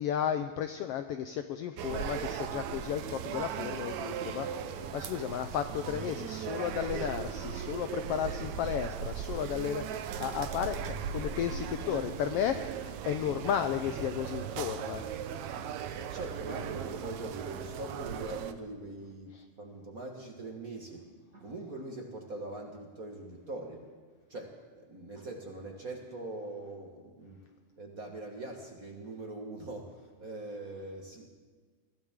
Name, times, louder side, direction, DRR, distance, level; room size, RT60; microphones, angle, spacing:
voice 1, 0.0-15.1 19.3-19.5, left 9 dB, 85° left, 8 dB, 1.3 m, -34 dB
sound 1, 1.8-18.5, right 8 dB, 75° right, 2.1 m, -38 dB
voice 2, 15.9-21.0 21.3-23.8 24.3-27.4 27.8-31.3, right 2 dB, 40° right, 1 dB, 1.4 m, -42 dB
23.0 x 15.5 x 3.7 m, 1.5 s
omnidirectional pair, 3.3 m